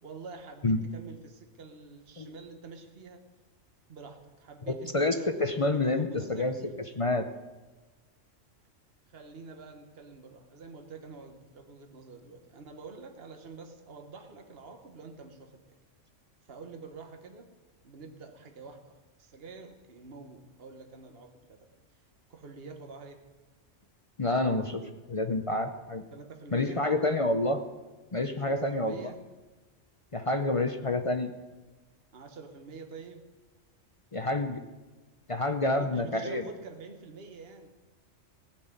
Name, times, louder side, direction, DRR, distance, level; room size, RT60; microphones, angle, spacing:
voice 1, 0.0-3.2 3.9-6.7 9.1-15.6 16.5-17.5 17.8-21.8 22.3-23.2 26.1-26.8 28.4-29.2 32.1-33.3 35.6-37.7, right 4 dB, 50° right, 5 dB, 1.4 m, -47 dB
voice 2, 4.7-6.5 7.0-7.3 24.2-24.8 25.1-26.0 26.5-27.6 28.1-29.1 30.1-31.3 34.1-34.6 35.3-36.4, left 2 dB, 35° left, 7 dB, 0.6 m, -28 dB
17.5 x 6.1 x 9.1 m, 1.2 s
omnidirectional pair, 1.3 m